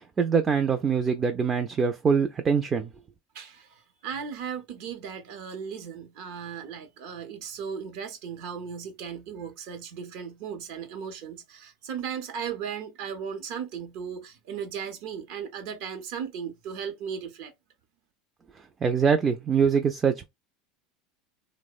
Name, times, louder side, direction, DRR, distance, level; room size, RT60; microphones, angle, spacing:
voice 1, 0.2-2.9 18.8-20.3, right 6 dB, 25° right, 0.3 m, -23 dB
voice 2, 3.3-17.5, right 7 dB, 70° right, 0.7 m, -36 dB
2.8 x 2.0 x 2.4 m
supercardioid pair, 120°, 0 cm